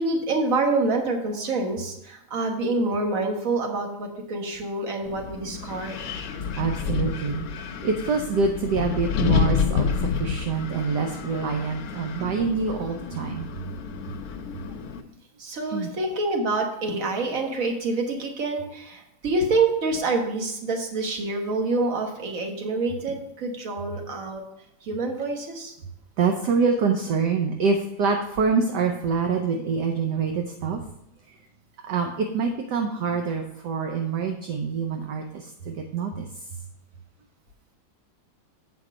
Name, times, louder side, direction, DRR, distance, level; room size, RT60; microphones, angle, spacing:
voice 1, 0.0-6.1 12.2-12.5 15.4-24.4 24.8-25.7, right 3 dB, 45° right, 3 dB, 1.5 m, -27 dB
Wind, 5.1-15.0, left 6 dB, 60° left, 1.0 m, -29 dB
voice 2, 6.6-7.5 7.8-13.5 15.7-15.9 26.2-30.8 31.8-36.3, right 5 dB, 65° right, 3 dB, 1.2 m, -26 dB
8.0 x 5.9 x 4.9 m, 0.81 s
omnidirectional pair, 2.3 m